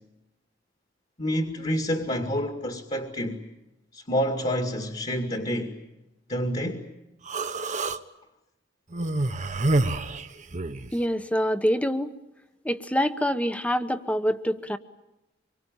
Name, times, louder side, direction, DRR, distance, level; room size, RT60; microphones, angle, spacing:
voice 1, 1.2-3.4 3.9-5.8 6.3-6.9, equal, 35° left, 2.3 m, -28 dB
Human voice, 7.3-8.0 8.9-10.9, right 2 dB, 40° right, 1.2 m, -27 dB
voice 2, 10.9-12.1 12.6-14.8, equal, 5° left, 1.2 m, -25 dB
26.0 x 23.5 x 9.1 m
head